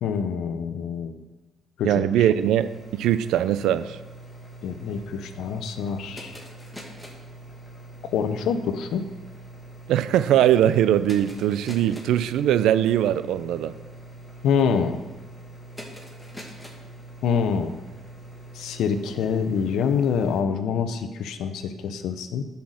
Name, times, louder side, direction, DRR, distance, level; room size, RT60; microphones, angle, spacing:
voice 1, 0.0-1.1 1.8-2.3 4.6-6.4 8.0-9.0 14.4-15.0 17.2-17.7 18.5-22.4, left 6 dB, 80° left, 9 dB, 0.9 m, -26 dB
voice 2, 1.8-4.0 9.9-13.7, right 11 dB, 85° right, 13 dB, 0.5 m, -21 dB
sound 1, 1.9-20.4, right 1 dB, 10° left, 2.3 m, -43 dB
10.5 x 5.8 x 6.4 m, 1.2 s
cardioid pair, 90°, 0 cm